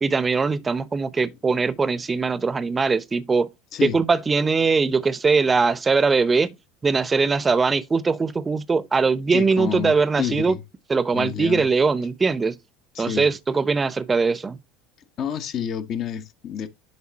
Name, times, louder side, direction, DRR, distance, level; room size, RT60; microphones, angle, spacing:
voice 1, 0.0-3.5 3.8-6.5 6.8-10.6 10.9-12.5 13.0-14.6, right 4 dB, 25° right, 0.7 m, -21 dB
voice 2, 9.3-10.6 11.1-11.7 12.9-13.3 15.2-16.7, left 8 dB, 50° left, 1.0 m, -29 dB
11.0 x 4.0 x 2.9 m
hypercardioid pair, 70°, 0 cm